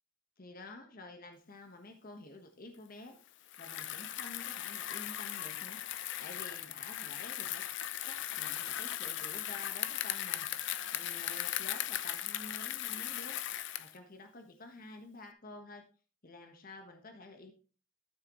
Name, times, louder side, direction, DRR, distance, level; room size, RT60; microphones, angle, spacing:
voice 1, 0.4-3.2 3.6-7.6 8.1-13.4 13.8-15.8 16.2-17.5, left 2 dB, 45° left, 5 dB, 1.3 m, -50 dB
Bicycle, 3.5-14.0, left 12 dB, 65° left, 0.6 m, -38 dB
13.0 x 6.6 x 3.1 m, 0.36 s
head